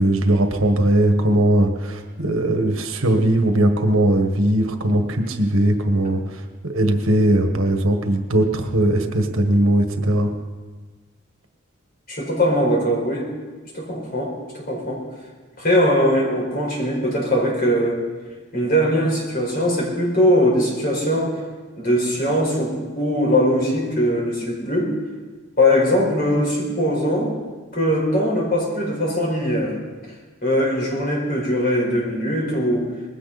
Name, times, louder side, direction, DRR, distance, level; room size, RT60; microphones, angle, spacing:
voice 1, 0.0-6.2 6.6-10.3, right 1 dB, 80° right, 5 dB, 1.6 m, -19 dB
voice 2, 12.1-13.2 13.7-15.0 15.6-18.0 18.5-21.3 21.8-24.9 25.6-27.4 27.7-29.8 30.4-32.9, equal, 45° left, -2 dB, 4.8 m, -21 dB
20.0 x 16.0 x 4.2 m, 1.4 s
head